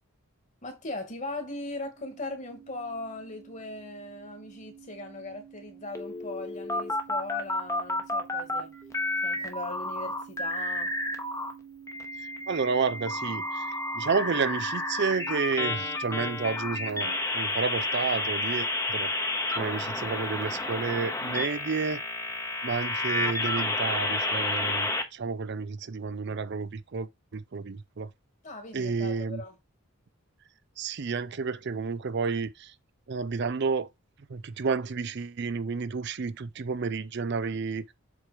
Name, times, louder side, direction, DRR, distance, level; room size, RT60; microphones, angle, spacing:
voice 1, 0.6-8.8 9.2-11.0 28.4-29.6, left 2 dB, 35° left, 1.9 m, -39 dB
sound 1, 2.0-17.2, right 8 dB, 70° right, 1.9 m, -49 dB
sound 2, 5.9-8.6 8.9-11.5 11.9-25.0, left 2 dB, 15° left, 0.9 m, -31 dB
voice 2, 12.5-19.1 19.6-22.0 22.6-28.1 28.7-29.4 30.8-32.7 33.1-33.9 34.3-37.9, right 5 dB, 50° right, 0.4 m, -31 dB
7.6 x 3.0 x 5.0 m
head